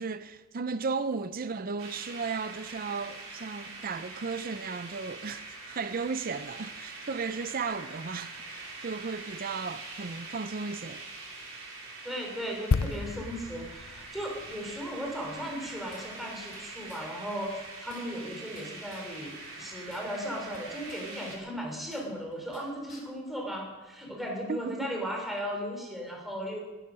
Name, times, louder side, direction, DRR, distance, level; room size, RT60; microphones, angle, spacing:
voice 1, 0.0-11.0 24.5-25.0, right 4 dB, 45° right, 0.5 m, -35 dB
sound 1, 1.8-21.4, right 3 dB, 70° right, 4.1 m, -44 dB
voice 2, 12.0-26.6, equal, ahead, 3.3 m, -36 dB
sound 2, 12.7-16.4 16.6-16.8, left 4 dB, 80° left, 0.5 m, -33 dB
sound 3, 15.4-16.6 16.9-17.0 17.3-17.4 17.6-19.1 19.4-21.0 21.3-22.6 22.9-23.0, left 3 dB, 40° left, 4.2 m, -53 dB
19.5 x 10.0 x 6.3 m
head